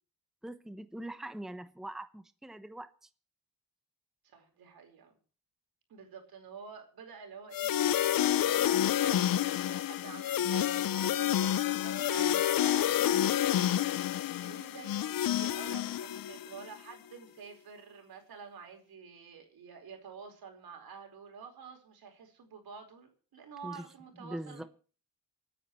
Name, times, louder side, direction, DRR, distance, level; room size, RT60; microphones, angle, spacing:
voice 1, 0.4-3.1 23.6-23.8 24.2-24.6, right 1 dB, ahead, 10 dB, 1.0 m, -42 dB
voice 2, 4.2-5.1 5.9-13.4 14.4-24.7, right 6 dB, 80° right, 4 dB, 4.7 m, -49 dB
sound 1, 7.5-16.6, left 11 dB, 70° left, 0.7 m, -29 dB
28.0 x 9.9 x 3.2 m, 0.39 s
wide cardioid pair, 125°, 36 cm